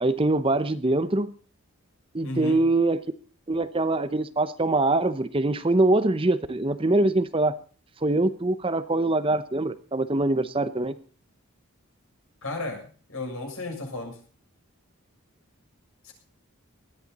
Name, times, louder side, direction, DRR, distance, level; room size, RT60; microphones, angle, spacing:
voice 1, 0.0-1.3 2.1-3.0 3.5-7.6 8.0-10.9, right 2 dB, 25° right, 12 dB, 0.7 m, -23 dB
voice 2, 2.2-2.6 12.4-12.8 13.1-14.2 16.0-16.1, left 2 dB, 65° left, 2 dB, 7.0 m, -33 dB
19.5 x 13.5 x 4.2 m, 0.39 s
head